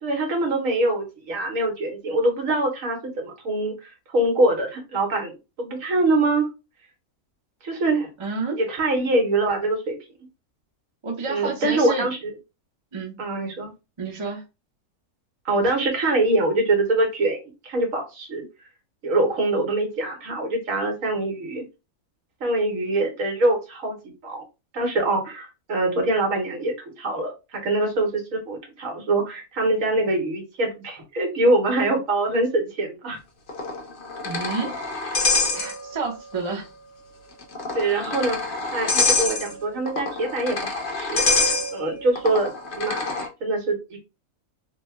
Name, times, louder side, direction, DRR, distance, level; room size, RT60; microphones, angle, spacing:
voice 1, 0.0-6.5 7.6-8.1 8.6-10.0 11.3-12.2 13.2-13.7 15.4-17.4 17.6-18.4 19.0-21.6 22.4-24.4 24.7-33.2 37.7-44.0, right 2 dB, 65° right, 2 dB, 1.4 m, -24 dB
voice 2, 8.2-8.6 11.0-12.1 12.9-13.3 14.0-14.4 34.2-34.8 35.5-36.7, right 4 dB, 30° right, 0 dB, 0.6 m, -29 dB
sound 1, 33.5-36.1 36.4-36.5 37.4-43.3, left 3 dB, 50° left, 0.7 m, -26 dB
3.3 x 2.1 x 3.2 m, 0.27 s
omnidirectional pair, 1.6 m